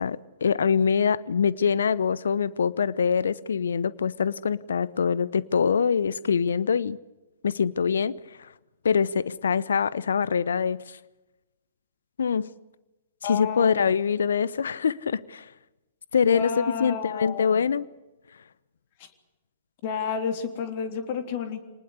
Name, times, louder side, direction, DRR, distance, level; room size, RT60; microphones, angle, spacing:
voice 1, 0.0-7.0 7.4-8.5 8.8-11.0 12.2-12.5 13.2-15.5 16.1-16.5 16.8-17.9, left 6 dB, 70° left, 0.8 m, -24 dB
voice 2, 13.2-13.9 16.3-17.6 19.8-21.7, left 6 dB, 45° left, 3.5 m, -31 dB
25.5 x 19.5 x 8.2 m
figure-of-eight pair, 115°, 0 cm